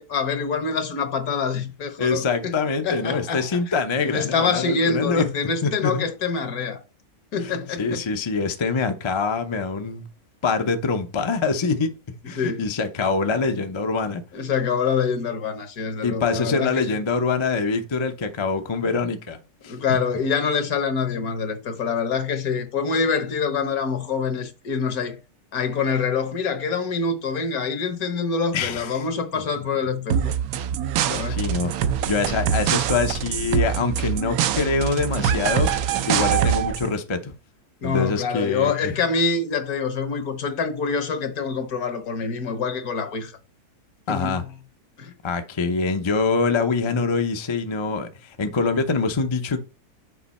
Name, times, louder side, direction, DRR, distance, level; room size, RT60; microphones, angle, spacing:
voice 1, 0.0-2.6 2.8-3.6 4.0-6.8 7.3-8.0 12.4-12.6 14.3-16.8 19.7-25.2 25.5-30.3 31.1-31.5 37.8-43.3 44.1-44.4 45.0-45.1, left 5 dB, 70° left, 1.6 m, -25 dB
voice 2, 2.0-5.2 5.6-6.0 7.4-7.5 7.8-10.1 10.4-11.9 12.3-14.2 16.0-19.4 19.6-19.7 28.5-28.9 29.3-29.4 31.3-31.7 32.1-37.3 37.8-38.9 44.1-44.4 45.2-49.6, left 4 dB, 35° left, 0.4 m, -24 dB
sound 1, 30.1-36.9, right 8 dB, 70° right, 1.0 m, -24 dB
6.7 x 5.1 x 4.2 m
omnidirectional pair, 1.6 m